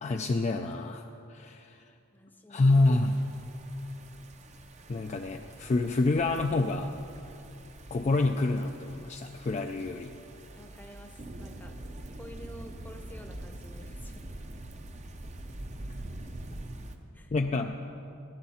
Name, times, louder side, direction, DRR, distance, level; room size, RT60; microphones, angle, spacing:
voice 1, 0.0-1.9 2.5-3.3 4.9-6.9 7.9-10.1 17.3-17.7, left 2 dB, 30° left, 4 dB, 0.3 m, -27 dB
voice 2, 2.1-2.7 10.5-11.7 12.1-14.3 17.1-17.3, equal, 10° left, 4 dB, 0.7 m, -50 dB
sound 1, 2.7-17.0, right 1 dB, 30° right, 0.6 m, -45 dB
16.5 x 10.5 x 4.3 m, 2.7 s
head